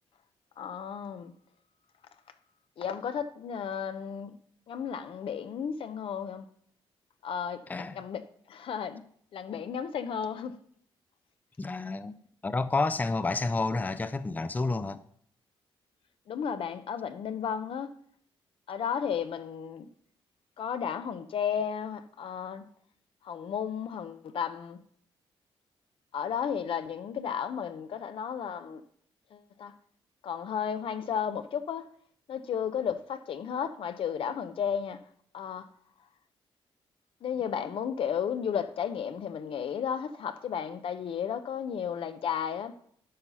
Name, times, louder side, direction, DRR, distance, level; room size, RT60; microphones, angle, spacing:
voice 1, 0.6-1.3 2.8-4.3 4.7-6.5 7.2-8.2 8.5-9.0 9.3-10.5 16.3-17.9 18.7-19.9 20.6-22.6 23.2-24.8 26.1-28.8 29.3-29.7 30.2-31.9 32.3-35.0 35.3-35.7 37.2-42.7, left 8 dB, 65° left, 0.8 m, -33 dB
voice 2, 7.7-8.0 11.6-12.2 12.4-15.0, left 3 dB, 15° left, 0.5 m, -30 dB
12.0 x 4.1 x 5.6 m
cardioid pair, 80°, 10 cm